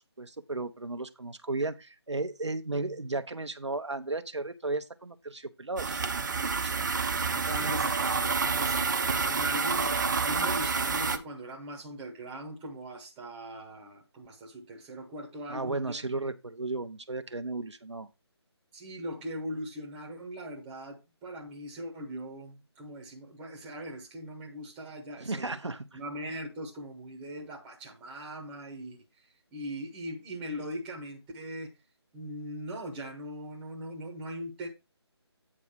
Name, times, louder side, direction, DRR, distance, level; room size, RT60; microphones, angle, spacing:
voice 1, 0.2-6.9 15.5-18.1 25.2-26.0, right 3 dB, 90° right, 0.8 m, -35 dB
sound 1, 5.8-11.2, right 5 dB, 45° right, 0.7 m, -28 dB
voice 2, 7.3-16.0 18.7-29.0 29.5-31.7 32.1-34.7, equal, 10° right, 1.0 m, -40 dB
8.6 x 4.8 x 4.5 m
figure-of-eight pair, 155°, 14 cm